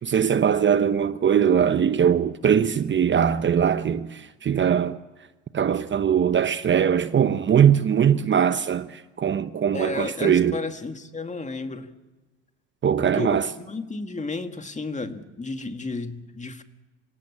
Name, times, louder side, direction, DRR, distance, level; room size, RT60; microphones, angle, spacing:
voice 1, 0.0-5.0 5.5-10.6 12.8-13.4, right 8 dB, 35° right, 0.9 m, -21 dB
voice 2, 9.7-11.9 13.0-16.6, left 3 dB, 20° left, 2.1 m, -32 dB
26.5 x 17.0 x 8.6 m
supercardioid pair, 75°, 34 cm